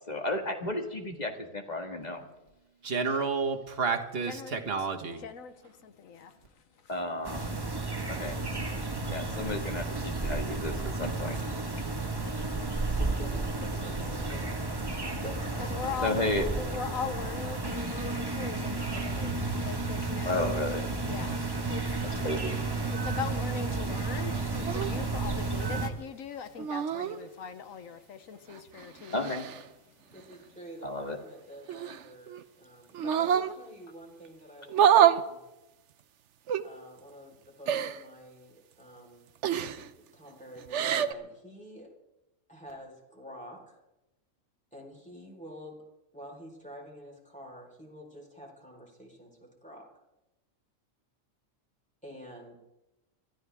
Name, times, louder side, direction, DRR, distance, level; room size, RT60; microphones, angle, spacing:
voice 1, 0.1-2.2 6.9-7.5 8.1-8.4 9.1-11.4 16.0-16.5 20.2-20.8 22.2-22.6 29.1-29.5 30.8-31.2, left 2 dB, 30° left, 4 dB, 2.0 m, -32 dB
voice 2, 2.8-5.2, right 5 dB, 45° right, 4 dB, 1.6 m, -30 dB
voice 3, 4.3-4.6 5.2-6.4 6.8-6.9 15.6-20.5 21.0-21.4 21.7-21.9 22.9-29.3, left 7 dB, 80° left, 10 dB, 1.3 m, -40 dB
sound 1, 7.2-25.9, right 3 dB, 20° right, 1.3 m, -32 dB
voice 4, 12.9-14.8 15.0-16.4 30.1-35.5 36.6-39.3 40.0-41.9 42.5-43.8 44.7-45.8 46.1-49.9 52.0-52.6, equal, 5° left, -2 dB, 4.2 m, -48 dB
sound 2, 24.7-24.9 26.6-27.2 28.5-29.6 31.7-32.4 32.9-33.5 34.7-35.2 36.5-36.6 37.7-38.0 39.4-39.9 40.6-41.1, right 9 dB, 65° right, 1.0 m, -26 dB
24.5 x 14.5 x 3.5 m, 0.96 s
omnidirectional pair, 1.4 m